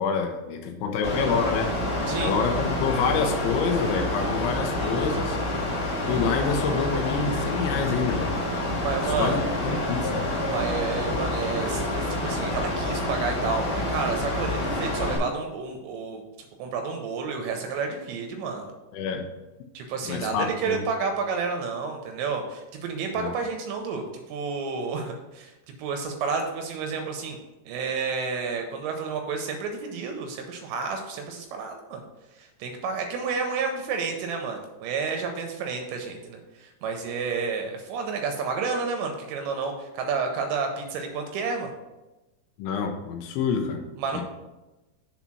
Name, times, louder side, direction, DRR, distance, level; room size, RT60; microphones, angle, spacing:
voice 1, 0.0-1.7 2.2-5.4 6.1-8.3 9.0-10.2 11.1-11.2 18.9-19.2 20.1-20.9 23.2-23.3 42.6-43.8 44.1-44.2, left 5 dB, 85° left, 3 dB, 3.0 m, -27 dB
Mechanical fan, 1.0-15.2, left 1 dB, 30° left, 2.3 m, -28 dB
voice 2, 8.8-9.4 10.5-16.2 16.6-18.7 19.7-25.5 25.8-27.4 27.7-32.0 32.3-41.7 44.0-44.2, right 5 dB, 85° right, 4 dB, 2.7 m, -30 dB
7.3 x 4.0 x 5.9 m, 1.1 s
omnidirectional pair, 5.6 m